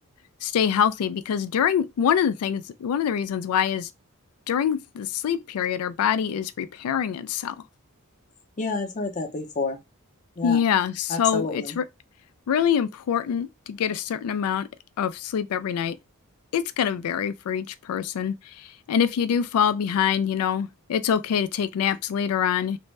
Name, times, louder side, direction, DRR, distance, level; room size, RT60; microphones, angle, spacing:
voice 1, 0.4-3.9 4.5-7.6 10.4-11.8 12.5-14.7 15.0-15.9 16.5-22.8, left 8 dB, 80° left, 0.3 m, -25 dB
voice 2, 8.6-9.8 10.4-10.6 11.1-11.8, left 3 dB, 35° left, 0.6 m, -29 dB
2.5 x 2.1 x 3.1 m
head